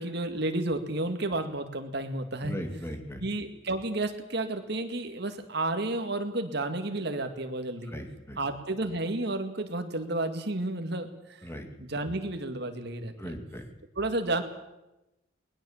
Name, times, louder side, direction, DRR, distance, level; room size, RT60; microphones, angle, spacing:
voice 1, 0.0-2.6 3.2-7.9 8.4-11.4 11.8-13.3 14.0-14.4, right 2 dB, 60° right, 7 dB, 2.1 m, -31 dB
voice 2, 2.4-3.2 7.9-8.4 11.4-11.7 13.2-13.6, equal, 15° left, 4 dB, 2.5 m, -38 dB
20.5 x 20.0 x 7.3 m, 0.96 s
head